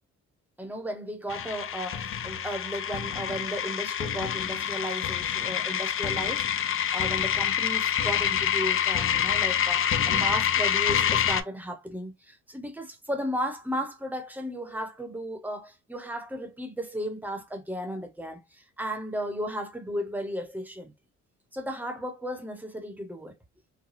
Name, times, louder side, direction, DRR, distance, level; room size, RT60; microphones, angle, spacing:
voice 1, 0.6-20.9 21.5-23.3, equal, 5° right, 0.9 m, -35 dB
sound 1, 1.3-11.4, left 9 dB, 45° left, 0.5 m, -27 dB
3.3 x 2.2 x 2.6 m
cardioid pair, 90°, 30 cm